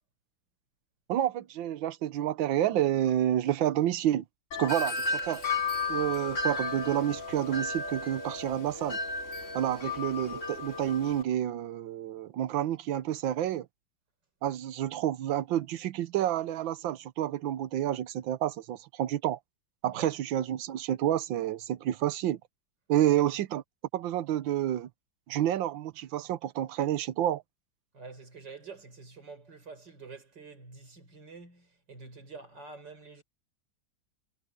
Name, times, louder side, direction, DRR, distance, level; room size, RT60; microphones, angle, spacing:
voice 1, 1.1-4.2 4.6-5.4 5.9-9.0 9.5-13.7 14.4-19.4 19.8-22.4 22.9-23.6 23.9-24.9 25.3-27.4, right 12 dB, 90° right, 1.6 m, -29 dB
Wind chime, 4.5-11.2, left 3 dB, 40° left, 3.3 m, -34 dB
voice 2, 9.6-9.9 19.9-20.1 23.1-23.3 27.9-33.2, right 4 dB, 65° right, 5.7 m, -47 dB
omnidirectional pair, 2.1 m